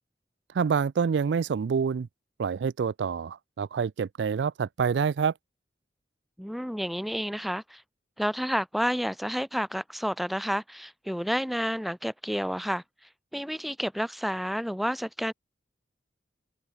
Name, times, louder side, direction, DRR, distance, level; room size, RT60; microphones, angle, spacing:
voice 1, 0.5-2.1 2.4-5.3, right 6 dB, 80° right, 0.4 m, -27 dB
voice 2, 6.4-7.8 8.2-12.8 13.3-15.3, equal, ahead, 1.1 m, -30 dB
head